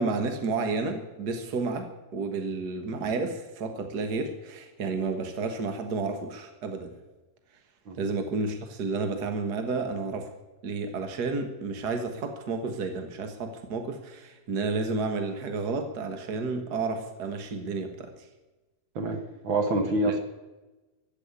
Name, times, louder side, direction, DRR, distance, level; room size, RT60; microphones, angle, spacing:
voice 1, 0.0-7.0 7.9-10.4 10.6-18.1 20.0-20.1, right 4 dB, 80° right, 6 dB, 0.9 m, -31 dB
voice 2, 18.9-20.2, right 2 dB, 60° right, 6 dB, 1.3 m, -27 dB
15.0 x 8.3 x 9.7 m, 1.1 s
omnidirectional pair, 4.4 m